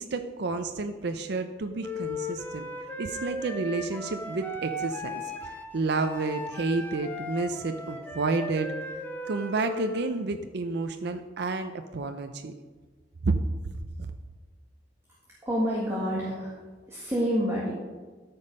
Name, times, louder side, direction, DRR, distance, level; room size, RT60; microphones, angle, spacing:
voice 1, 0.0-2.7 3.0-8.7 9.3-12.5 13.2-13.4 13.7-14.1, right 3 dB, 65° right, 7 dB, 0.6 m, -30 dB
Wind instrument woodwind instrument, 1.8-10.1, left 2 dB, 10° left, 1.0 m, -37 dB
voice 2, 15.4-16.5 16.9-17.7, equal, 15° right, -6 dB, 1.8 m, -28 dB
13.5 x 5.3 x 5.4 m, 1.4 s
head